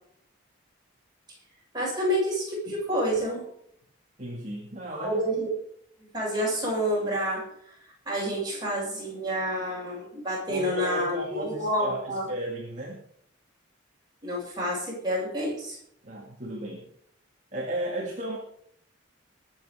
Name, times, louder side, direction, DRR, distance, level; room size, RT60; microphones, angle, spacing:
voice 1, 1.7-3.4 4.9-5.5 6.1-7.7 8.0-12.3 14.2-15.8, equal, 20° right, -4 dB, 7.8 m, -29 dB
voice 2, 4.2-5.2 10.5-13.0 16.0-16.9 17.5-18.4, right 1 dB, 35° right, -1 dB, 2.3 m, -34 dB
21.0 x 8.1 x 5.0 m, 0.67 s
head